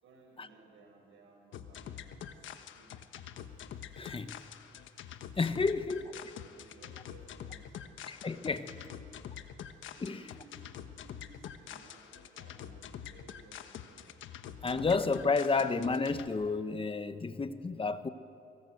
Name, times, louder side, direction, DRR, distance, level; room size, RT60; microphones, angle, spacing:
voice 1, 0.0-2.9 4.0-4.2 5.6-8.0 8.5-9.1 9.9-14.1, right 2 dB, 75° right, 1 dB, 6.8 m, -59 dB
sound 1, 1.5-16.3, left 9 dB, 75° left, 1.3 m, -46 dB
voice 2, 4.0-4.3 5.4-6.1 8.1-8.7 10.0-10.2 14.6-18.1, left 4 dB, 25° left, 11 dB, 1.1 m, -31 dB
24.0 x 19.5 x 8.0 m, 2.6 s
cardioid pair, 90°, 20 cm